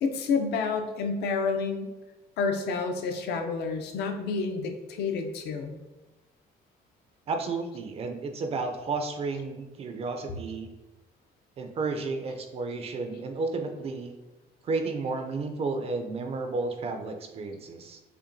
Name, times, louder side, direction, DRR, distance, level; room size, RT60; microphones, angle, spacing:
voice 1, 0.0-1.9 2.4-5.8, left 4 dB, 75° left, 5 dB, 0.5 m, -29 dB
voice 2, 7.3-10.7 11.6-14.1 14.6-18.0, right 3 dB, 35° right, 5 dB, 0.3 m, -32 dB
5.6 x 2.2 x 2.6 m, 1.1 s
cardioid pair, 150°, 17 cm